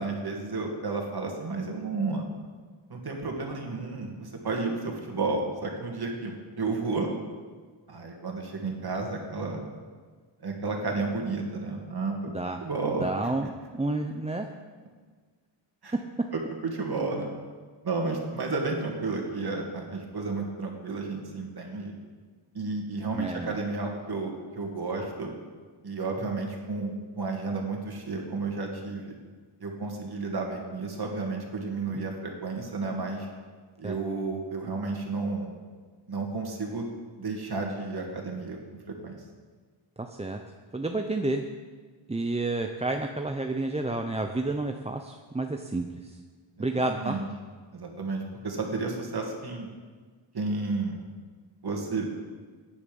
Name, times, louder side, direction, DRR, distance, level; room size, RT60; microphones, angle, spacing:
voice 1, 0.0-2.2 2.9-7.1 7.9-9.6 10.4-12.3 12.6-13.1 15.8-15.9 16.3-17.4 17.8-21.9 22.5-25.3 25.8-29.1 29.6-33.3 33.8-35.5 36.1-36.9 37.2-38.6 39.0-39.2 46.6-46.7 47.0-47.3 47.7-49.7 50.3-51.0 51.6-52.1, right 3 dB, 55° right, 1 dB, 2.4 m, -32 dB
voice 2, 13.0-14.5 23.1-23.6 31.9-32.1 33.8-34.0 40.0-40.4 40.7-41.4 42.1-46.2 46.6-47.2, right 2 dB, 15° right, 4 dB, 0.6 m, -30 dB
16.0 x 10.0 x 5.4 m, 1.5 s
wide cardioid pair, 135°, 46 cm